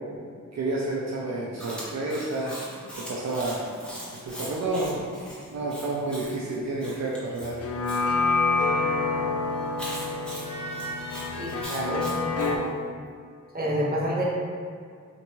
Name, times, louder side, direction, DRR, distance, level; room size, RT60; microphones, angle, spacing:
voice 1, 0.5-2.5 3.0-3.6 4.3-5.0 5.5-7.6, right 2 dB, 60° right, -4 dB, 0.5 m, -30 dB
Chewing mastication, 1.6-8.0 9.8-12.5, equal, 5° left, 1.1 m, -41 dB
sound 1, 7.4-12.6, left 3 dB, 50° left, 0.4 m, -27 dB
sound 2, 7.6-8.6 9.5-9.7 10.4-11.7, right 2 dB, 20° left, 0.8 m, -40 dB
voice 2, 11.4-12.8 13.5-14.2, right 1 dB, 30° right, -4 dB, 0.9 m, -29 dB
4.5 x 2.6 x 3.0 m, 2.2 s
wide cardioid pair, 75°, 31 cm